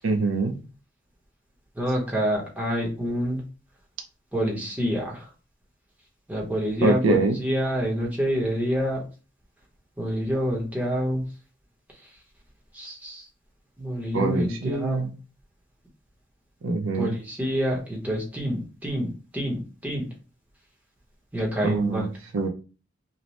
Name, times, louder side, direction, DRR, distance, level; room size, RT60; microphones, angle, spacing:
voice 1, 0.0-0.6 6.8-7.4 14.1-15.1 16.6-17.1 21.6-22.1 22.3-22.5, right 3 dB, 75° right, 6 dB, 0.4 m, -24 dB
voice 2, 1.8-3.4 4.3-5.3 6.3-9.0 10.0-11.3 12.7-13.2 13.8-15.0 16.9-20.1 21.3-22.1, equal, 10° right, -2 dB, 0.7 m, -27 dB
2.7 x 2.0 x 3.0 m, 0.34 s
head